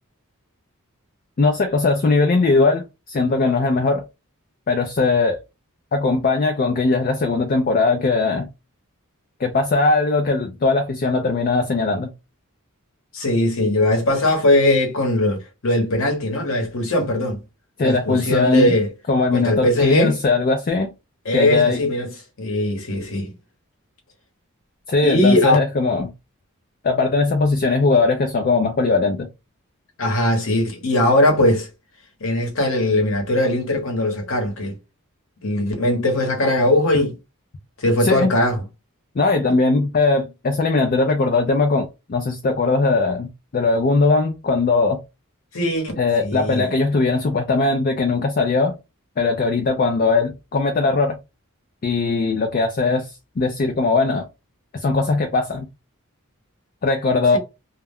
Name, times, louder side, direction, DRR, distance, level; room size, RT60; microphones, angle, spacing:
voice 1, 1.4-4.0 4.7-5.4 5.9-8.5 9.4-12.1 17.8-18.8 19.1-20.9 21.3-21.8 24.9-26.1 26.8-29.3 38.0-38.3 39.2-45.0 46.0-48.7 49.2-51.2 51.8-54.2 54.8-55.7 56.8-57.4, left 3 dB, 40° left, 0.4 m, -19 dB
voice 2, 13.1-17.4 17.8-18.9 19.3-20.2 21.2-22.1 22.4-23.3 25.0-25.6 30.0-31.7 32.2-34.7 35.4-37.1 37.8-38.6 45.5-45.9 46.2-46.7, left 1 dB, 60° left, 1.0 m, -20 dB
2.3 x 2.1 x 3.4 m
head